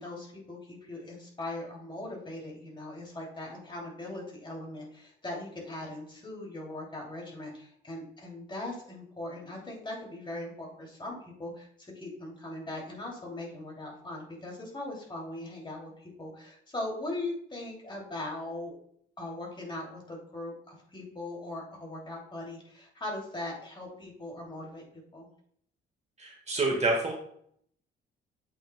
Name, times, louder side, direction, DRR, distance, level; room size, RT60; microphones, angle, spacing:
voice 1, 0.0-18.7 19.2-25.3, left 2 dB, 25° left, -2 dB, 2.6 m, -40 dB
voice 2, 26.2-27.1, right 2 dB, 35° right, 1 dB, 1.5 m, -27 dB
8.2 x 5.2 x 2.2 m, 0.65 s
cardioid pair, 90°, 20 cm